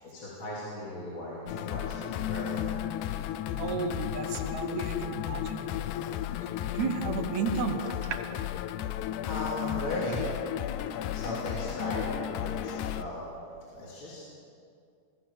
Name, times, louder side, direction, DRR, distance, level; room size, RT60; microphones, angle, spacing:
voice 1, 0.0-2.6 9.2-10.3 11.1-13.2 13.7-14.2, left 1 dB, 45° left, -6 dB, 3.8 m, -37 dB
sound 1, 1.5-13.0, left 11 dB, 90° left, 2.2 m, -34 dB
voice 2, 3.5-5.7 6.7-8.2, right 5 dB, 75° right, 7 dB, 2.4 m, -33 dB
24.0 x 15.0 x 7.1 m, 2.4 s
omnidirectional pair, 3.3 m